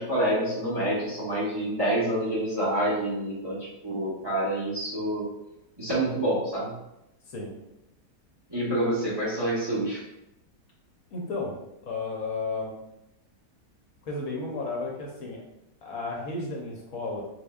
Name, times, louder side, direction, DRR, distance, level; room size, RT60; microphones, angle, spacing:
voice 1, 0.0-3.6 3.8-5.3 5.8-6.7 8.5-10.0, right 1 dB, 20° right, -7 dB, 0.7 m, -27 dB
voice 2, 11.1-11.5 11.8-12.7 14.0-15.4 15.8-17.2, left 3 dB, 65° left, -2 dB, 1.2 m, -33 dB
3.9 x 3.4 x 2.3 m, 0.88 s
omnidirectional pair, 1.7 m